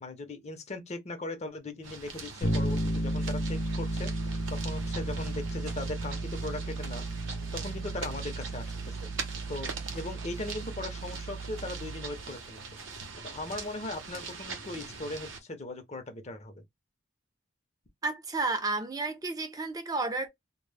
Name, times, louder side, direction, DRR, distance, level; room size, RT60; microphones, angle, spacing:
voice 1, 0.0-4.1 4.5-7.1 7.5-12.6 13.2-16.6, left 2 dB, 35° left, 0.5 m, -39 dB
sound 1, 1.8-15.4, right 4 dB, 75° right, 0.6 m, -42 dB
Bass guitar, 2.4-12.3, right 1 dB, 85° left, 0.5 m, -34 dB
voice 2, 18.0-20.3, right 3 dB, 20° right, 0.4 m, -31 dB
2.0 x 2.0 x 3.2 m
head